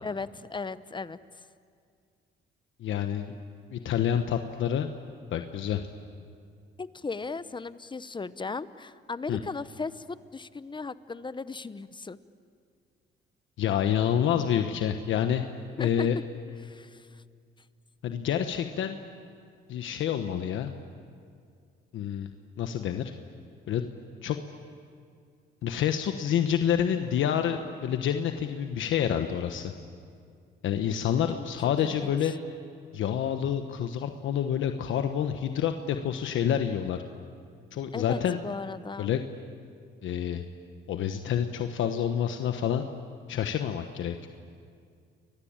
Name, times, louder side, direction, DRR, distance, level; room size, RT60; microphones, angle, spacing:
voice 1, 0.0-1.5 6.8-12.2 15.8-16.1 16.6-17.2 31.3-31.5 31.8-32.3 37.9-39.1, left 4 dB, 25° left, 15 dB, 0.9 m, -37 dB
voice 2, 2.8-3.3 3.7-4.9 5.3-5.8 9.3-9.4 13.6-15.4 15.8-16.2 18.0-19.0 19.7-20.7 21.9-22.3 22.6-23.1 23.7-23.8 24.2-24.4 25.6-29.7 30.6-32.3 32.9-37.0 37.7-38.4 39.0-39.2 40.0-40.4 40.9-42.8 43.3-44.3, left 9 dB, 75° left, 6 dB, 1.2 m, -28 dB
30.0 x 22.0 x 8.9 m, 2.2 s
cardioid pair, 90°, 20 cm